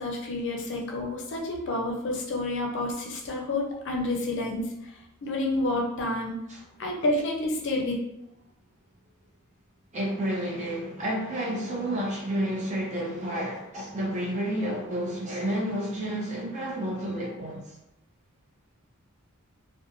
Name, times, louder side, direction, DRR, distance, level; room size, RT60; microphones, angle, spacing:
voice 1, 0.0-4.9 5.2-6.3 6.8-8.0, left 2 dB, 55° left, 0 dB, 0.5 m, -29 dB
voice 2, 9.9-17.7, right 1 dB, 30° right, -3 dB, 0.6 m, -30 dB
2.4 x 2.1 x 2.8 m, 0.81 s
head